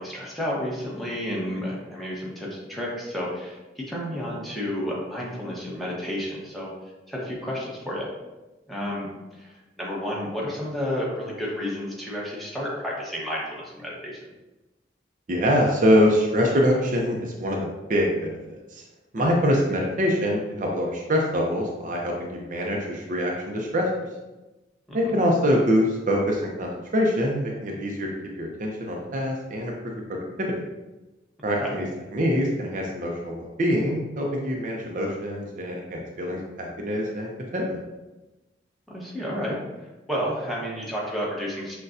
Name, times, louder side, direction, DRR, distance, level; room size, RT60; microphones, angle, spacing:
voice 1, 0.0-6.7 7.1-8.1 8.7-14.2 19.2-19.3 24.9-25.2 31.5-31.7 38.9-39.6 40.1-41.8, equal, ahead, -5 dB, 0.9 m, -31 dB
voice 2, 15.3-18.8 19.1-23.9 24.9-30.6 31.4-31.9 32.1-37.8, equal, 45° right, -1 dB, 0.5 m, -24 dB
6.4 x 2.2 x 2.5 m, 1.1 s
head